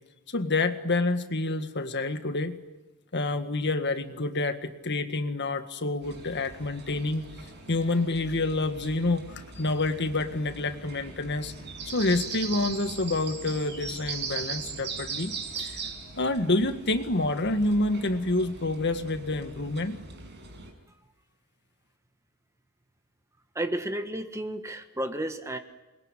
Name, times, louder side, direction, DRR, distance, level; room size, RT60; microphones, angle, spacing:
voice 1, 0.3-2.6 3.1-7.3 7.7-11.5 11.8-15.8 16.2-20.0, left 2 dB, 50° left, 8 dB, 1.8 m, -28 dB
sound 1, 6.0-20.7, right 5 dB, 50° right, 5.9 m, -40 dB
voice 2, 23.5-25.6, right 1 dB, 15° right, 7 dB, 1.5 m, -32 dB
27.5 x 22.0 x 9.9 m, 1.1 s
head